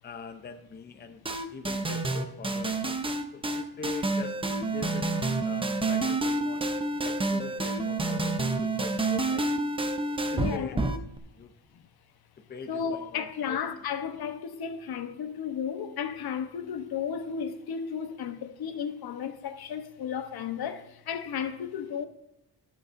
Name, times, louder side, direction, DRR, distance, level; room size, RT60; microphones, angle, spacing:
voice 1, 0.0-1.2 1.5-2.8 3.3-4.4 4.7-6.7 7.0-9.5 10.2-10.8 11.3-11.5 12.5-13.6, left 4 dB, 25° left, 0.7 m, -43 dB
sound 1, 1.3-11.2, right 2 dB, 15° right, 0.7 m, -28 dB
voice 2, 10.3-10.8 12.7-22.1, left 7 dB, 65° left, 1.0 m, -34 dB
19.5 x 7.0 x 2.6 m
cardioid pair, 150°, 41 cm